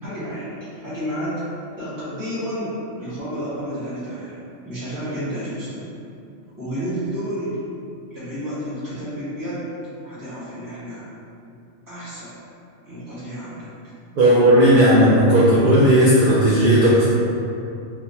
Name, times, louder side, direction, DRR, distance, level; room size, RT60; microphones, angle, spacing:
voice 1, 0.0-1.4 1.8-4.4 4.6-5.8 6.6-7.6 8.1-9.7 10.0-11.0 11.9-12.4 12.8-13.7, equal, 15° right, -14 dB, 1.5 m, -30 dB
voice 2, 14.2-17.0, equal, 60° right, -7 dB, 0.5 m, -14 dB
3.8 x 2.8 x 2.7 m, 2.5 s
omnidirectional pair, 1.3 m